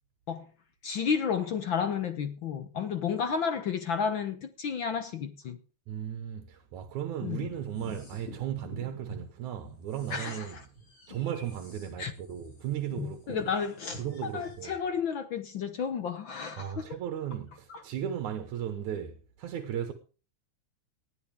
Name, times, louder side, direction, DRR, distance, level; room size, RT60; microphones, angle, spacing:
voice 1, 0.8-5.6 7.2-7.5 10.1-10.6 12.0-12.1 13.0-16.9 17.7-17.8, left 6 dB, 60° left, 1.3 m, -32 dB
voice 2, 5.9-10.6 11.1-13.4 14.0-14.7 16.6-19.9, right 10 dB, 80° right, 2.7 m, -36 dB
sound 1, 7.3-9.2 9.6-14.7, right 1 dB, 45° left, 5.5 m, -46 dB
19.5 x 12.5 x 3.5 m
omnidirectional pair, 3.4 m